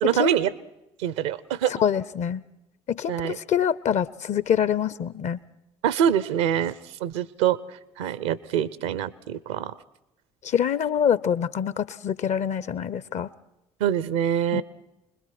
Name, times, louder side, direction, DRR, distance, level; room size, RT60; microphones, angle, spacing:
voice 1, 0.0-0.5 1.0-1.7 3.1-3.4 5.8-6.7 7.0-9.7 13.8-14.6, right 9 dB, 75° right, 19 dB, 0.7 m, -25 dB
voice 2, 1.8-2.4 2.9-5.4 10.4-13.3 14.5-14.6, left 8 dB, 50° left, 19 dB, 0.8 m, -25 dB
26.0 x 20.5 x 6.0 m, 0.92 s
figure-of-eight pair, 50°, 16 cm